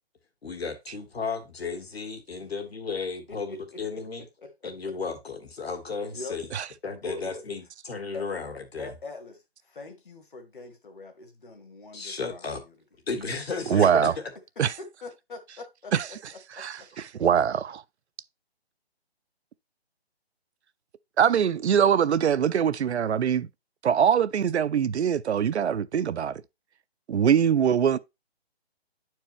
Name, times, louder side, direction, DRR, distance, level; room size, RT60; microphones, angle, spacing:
voice 1, 0.4-4.3 4.6-6.5 6.8-8.9 11.9-12.6 13.1-14.3, left 4 dB, 70° left, 2.0 m, -34 dB
voice 2, 3.3-4.0 4.4-4.7 6.1-6.4 7.0-7.4 8.1-8.2 8.8-12.7 14.1-14.2 14.8-15.9 16.5-17.0, left 2 dB, 50° left, 1.5 m, -43 dB
voice 3, 13.7-14.1 14.6-14.7 15.9-16.1 16.5-17.8 21.2-23.5 23.8-26.4 27.1-28.0, right 8 dB, 85° right, 0.6 m, -23 dB
9.7 x 4.6 x 3.0 m
hypercardioid pair, 175°, 32 cm